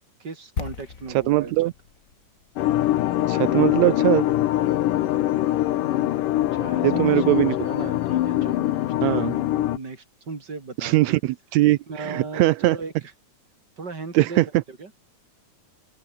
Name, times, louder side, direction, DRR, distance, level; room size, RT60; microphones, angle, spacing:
voice 1, 0.2-1.5 6.3-11.1 11.9-12.9 13.8-14.9, right 4 dB, 30° right, 4.4 m, -37 dB
sound 1, 0.6-4.5 4.8-4.9, left 6 dB, 40° left, 1.2 m, -38 dB
voice 2, 1.1-1.7 3.3-4.3 6.8-7.6 9.0-9.3 10.8-12.8 14.1-14.5, right 17 dB, 75° right, 1.7 m, -21 dB
sound 2, 2.6-9.8, left 14 dB, 80° left, 2.6 m, -23 dB
open air
omnidirectional pair, 3.7 m